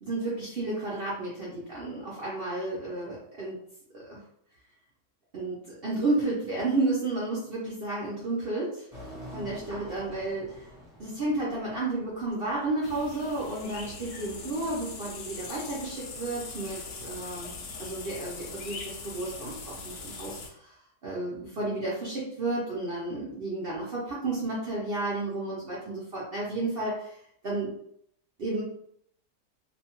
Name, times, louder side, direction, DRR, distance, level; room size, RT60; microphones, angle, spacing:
voice 1, 0.0-3.6 3.9-4.2 5.3-8.9 9.3-10.7 11.0-17.5 17.8-20.8 21.0-27.7 28.4-28.6, right 2 dB, 60° right, -6 dB, 0.6 m, -32 dB
sound 1, 8.9-14.6, equal, 5° right, 0.8 m, -47 dB
sound 2, 12.8-20.5, left 4 dB, 70° left, 0.7 m, -41 dB
2.7 x 2.2 x 2.9 m, 0.69 s
omnidirectional pair, 1.8 m